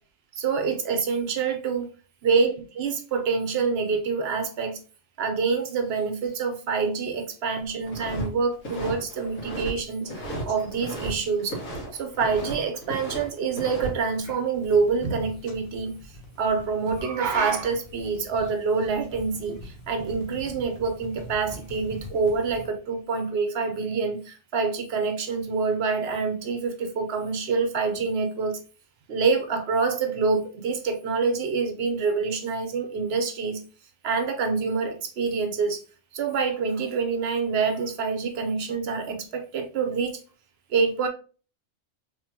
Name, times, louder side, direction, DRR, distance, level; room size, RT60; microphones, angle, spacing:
voice 1, 0.3-1.9 2.2-4.8 5.2-11.6 11.9-16.0 16.4-28.6 29.1-33.6 34.0-35.8 36.1-40.2 40.7-41.1, right 5 dB, 60° right, 6 dB, 0.8 m, -26 dB
sound 1, 5.6-6.4 6.8-7.2 7.6-8.0 8.4-8.5 8.7-9.4 9.7-12.3 12.6-13.1 13.6-22.7, left 1 dB, 50° left, 1.2 m, -45 dB
sound 2, 7.9-8.3 8.5-9.7 10.0-11.1 11.4-12.6 12.8-13.9, right 1 dB, 70° left, 2.0 m, -34 dB
3.6 x 3.4 x 2.8 m, 0.37 s
omnidirectional pair, 1.4 m